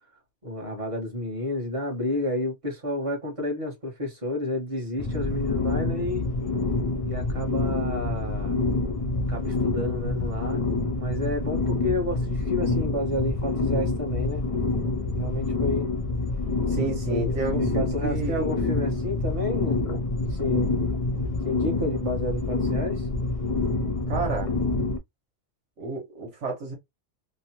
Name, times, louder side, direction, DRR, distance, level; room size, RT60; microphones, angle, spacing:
voice 1, 0.4-6.3 7.0-8.6 9.3-10.6 11.0-14.5 15.1-15.9 17.1-20.0 20.3-20.7 21.4-23.1, left 1 dB, 30° right, 1.0 m, -30 dB
sound 1, 5.0-25.0, left 3 dB, 70° left, 0.3 m, -27 dB
voice 2, 16.7-18.5 24.1-24.5 25.8-26.7, right 3 dB, 80° right, 1.3 m, -30 dB
3.0 x 2.0 x 2.8 m
omnidirectional pair, 1.2 m